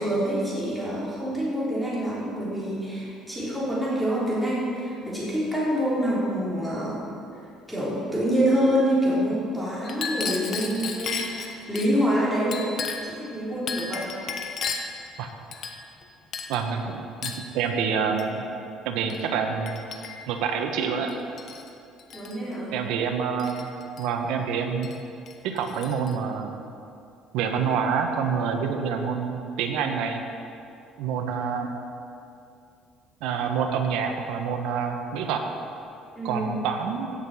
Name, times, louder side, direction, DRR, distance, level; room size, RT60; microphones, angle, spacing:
voice 1, 0.0-7.1 7.7-12.7 13.1-14.1 22.1-22.8 36.1-36.6, equal, ahead, -8 dB, 3.4 m, -26 dB
Chink clink, 9.8-11.9 12.5-13.2 13.7-15.0 15.5-16.0 16.3-16.6 17.2-17.5 18.2-18.4 19.1-19.3 19.7-20.4 21.1-21.7 22.0-22.4 23.4-24.1 24.8-25.0 25.3-26.2, left 5 dB, 45° left, 1.0 m, -34 dB
voice 2, 16.5-18.4 18.8-19.8 20.3-21.2 22.7-23.7 24.0-24.9 25.4-26.6 27.3-30.2 31.0-31.7 33.2-35.4 36.2-37.1, right 6 dB, 85° right, 4 dB, 1.3 m, -27 dB
16.0 x 6.7 x 5.6 m, 2.6 s
cardioid pair, 150°, 0 cm